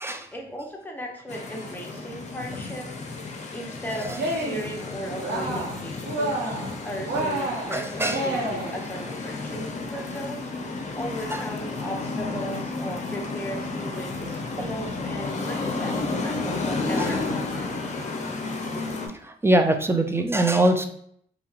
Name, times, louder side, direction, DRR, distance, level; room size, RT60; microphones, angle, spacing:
voice 1, 0.3-2.9 3.5-18.0, equal, 10° left, 0 dB, 0.8 m, -37 dB
sound 1, 1.3-19.1, left 3 dB, 45° left, 0.6 m, -32 dB
Cheering, 4.1-4.7 5.1-5.8 6.0-6.7 7.1-8.8, right 1 dB, 75° right, 0.9 m, -29 dB
voice 2, 7.7-8.2 9.9-10.1 11.3-11.4 14.6-14.7 17.0-17.2 19.1-20.9, right 1 dB, 15° right, 5 dB, 0.3 m, -23 dB
2.9 x 2.6 x 2.4 m, 0.66 s
cardioid pair, 65°, 17 cm